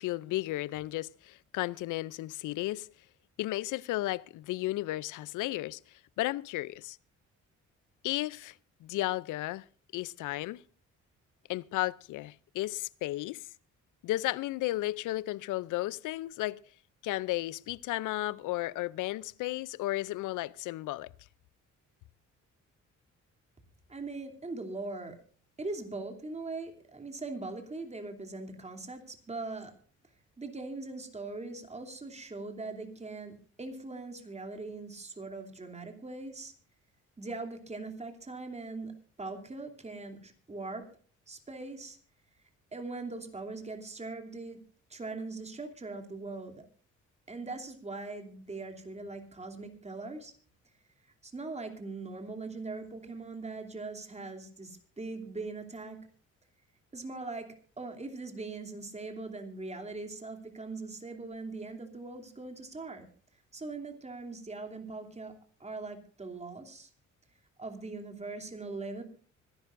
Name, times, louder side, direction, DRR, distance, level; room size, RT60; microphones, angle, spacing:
voice 1, 0.0-2.9 3.4-5.8 6.2-7.0 8.0-8.5 8.8-9.6 9.9-10.6 11.5-13.5 14.0-16.6 17.0-21.1, left 17 dB, 85° left, 0.5 m, -34 dB
voice 2, 23.9-25.2 25.6-29.7 30.4-36.5 37.2-38.9 39.2-40.9 41.3-42.0 42.7-44.6 44.9-46.7 47.3-50.3 51.2-56.0 56.9-57.5 57.8-63.1 63.5-65.3 65.6-66.9 67.6-69.0, right 3 dB, 20° right, 2.9 m, -41 dB
25.5 x 11.0 x 2.6 m
cardioid pair, 90°, 30 cm